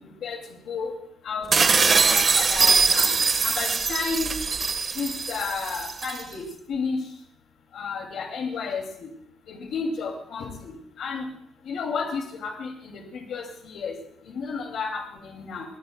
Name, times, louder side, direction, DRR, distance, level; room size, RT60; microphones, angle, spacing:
voice 1, 1.2-3.1 3.4-4.3 5.0-6.4 6.7-7.0 7.7-9.1 9.5-11.2 11.7-13.0 13.3-13.9 14.4-15.6, left 5 dB, 70° left, 1 dB, 2.5 m, -32 dB
sound 1, 1.5-6.2, right 4 dB, 35° right, 1.3 m, -22 dB
22.5 x 21.5 x 2.3 m, 0.69 s
cardioid pair, 135°, 0 cm